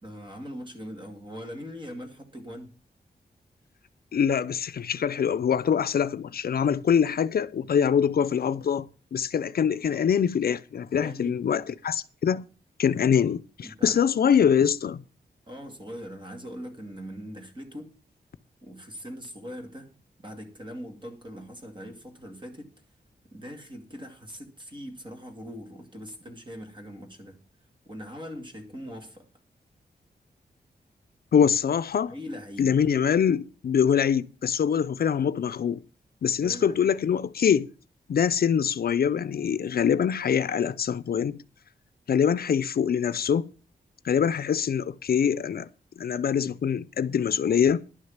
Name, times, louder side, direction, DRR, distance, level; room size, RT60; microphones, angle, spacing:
voice 1, 0.0-2.7 10.9-11.4 13.6-14.0 15.5-17.9 18.6-19.9 20.2-22.7 23.2-27.4 27.8-29.3 32.1-32.7 36.4-36.9, equal, 30° right, 2.3 m, -41 dB
voice 2, 4.1-12.4 12.8-15.0 31.3-32.1 32.6-35.8 36.2-37.7 38.1-41.4 42.1-43.5 44.0-45.7 46.0-47.8, left 7 dB, 65° left, 0.5 m, -24 dB
11.0 x 6.4 x 7.2 m
wide cardioid pair, 160°, 17 cm